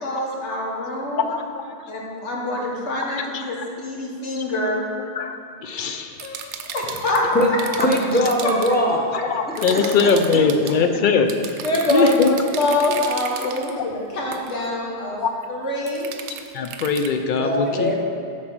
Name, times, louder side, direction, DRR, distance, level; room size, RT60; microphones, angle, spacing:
voice 1, 0.0-1.3 1.9-3.6 3.8-4.8 6.7-7.2 7.5-7.6 9.6-9.7 11.6-15.2 15.5-16.1, left 2 dB, 85° left, -2 dB, 1.6 m, -25 dB
voice 2, 1.1-1.8 3.3-3.4 5.2-5.4 5.6-6.6 9.3-11.3 11.9-12.4 15.2-15.3 16.5-17.9, left 5 dB, 60° left, 7 dB, 0.6 m, -21 dB
sound 1, 6.2-8.7 9.6-10.8 11.3-13.7 14.3-14.5 15.9-17.1, right 8 dB, 90° right, 0.9 m, -34 dB
voice 3, 7.8-9.1 9.7-9.8 17.3-18.0, equal, 10° left, -2 dB, 0.8 m, -20 dB
7.4 x 4.3 x 6.1 m, 2.5 s
omnidirectional pair, 1.2 m